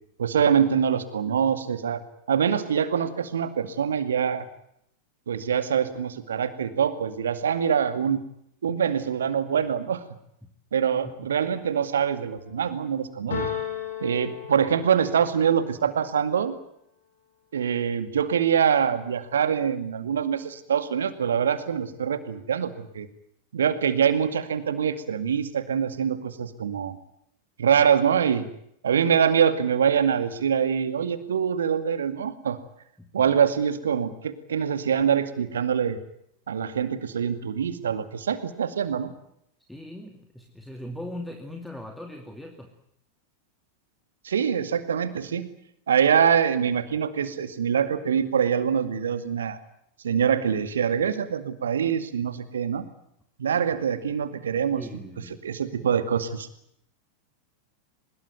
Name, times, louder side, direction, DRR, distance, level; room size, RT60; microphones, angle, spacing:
voice 1, 0.2-2.0 2.3-4.4 5.3-8.2 8.6-10.0 10.7-13.5 14.0-16.6 17.5-23.1 23.5-27.0 27.6-28.5 28.8-32.6 33.1-36.0 36.5-39.1 44.2-45.5 45.9-49.6 50.0-52.9 53.4-54.9 55.4-56.5, right 7 dB, 65° right, 11 dB, 2.2 m, -24 dB
sound 1, 13.3-15.2, left 8 dB, 65° left, 7.8 m, -33 dB
voice 2, 33.0-33.3 39.7-42.8 53.5-53.6 54.7-55.5, left 1 dB, 5° left, 4 dB, 2.5 m, -40 dB
23.5 x 21.0 x 9.3 m, 0.74 s
figure-of-eight pair, 90°, 0 cm